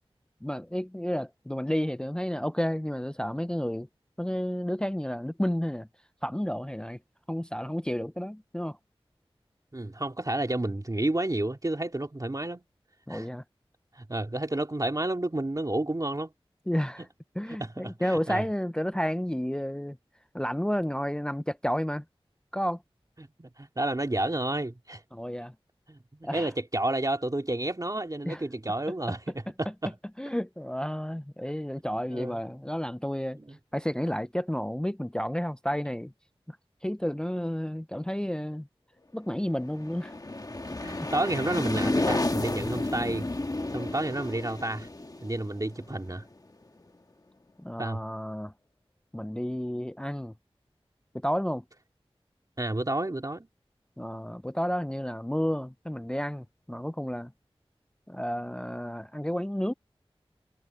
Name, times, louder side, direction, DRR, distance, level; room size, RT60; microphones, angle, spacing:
voice 1, 0.4-3.9 4.2-5.9 6.2-7.0 7.3-8.8 13.1-13.4 16.7-17.1 17.4-20.0 20.3-22.0 22.5-22.8 25.1-25.5 26.2-26.5 28.2-28.4 30.2-33.4 33.7-36.1 36.5-36.6 36.8-38.7 39.1-40.1 41.0-41.1 47.6-48.5 49.1-50.3 51.1-51.6 54.0-57.3 58.1-59.7, equal, 10° left, 0.5 m, -31 dB
voice 2, 9.7-12.6 13.1-13.3 14.0-16.3 17.6-18.4 23.2-25.0 25.9-29.9 32.1-32.4 33.5-33.6 40.8-43.3 43.7-44.9 45.2-46.3 47.8-48.0 52.6-53.5, right 1 dB, 35° right, 2.5 m, -30 dB
sound 1, 39.6-46.3, left 2 dB, 40° left, 1.4 m, -32 dB
wide cardioid pair, 55°, 10 cm